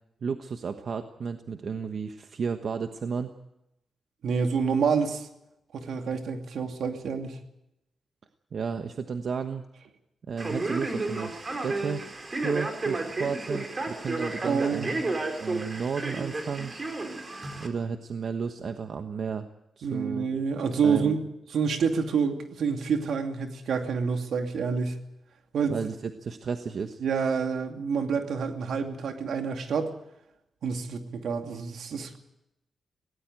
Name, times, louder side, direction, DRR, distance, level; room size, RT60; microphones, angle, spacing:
voice 1, 0.2-3.3 8.5-9.6 10.3-12.0 12.3-14.9 15.4-16.8 17.6-19.5 19.8-20.3 20.8-21.2 25.7-27.0, right 5 dB, 60° right, 7 dB, 1.2 m, -33 dB
voice 2, 4.2-5.3 5.7-7.4 14.4-15.0 19.8-21.2 21.5-25.0 25.5-25.8 27.0-29.9 30.6-32.2, right 5 dB, 80° right, 5 dB, 2.5 m, -28 dB
Male speech man speaking, 10.4-17.7, right 2 dB, 35° right, 4.1 m, -32 dB
18.0 x 18.0 x 9.0 m, 0.86 s
cardioid pair, 80°, 0 cm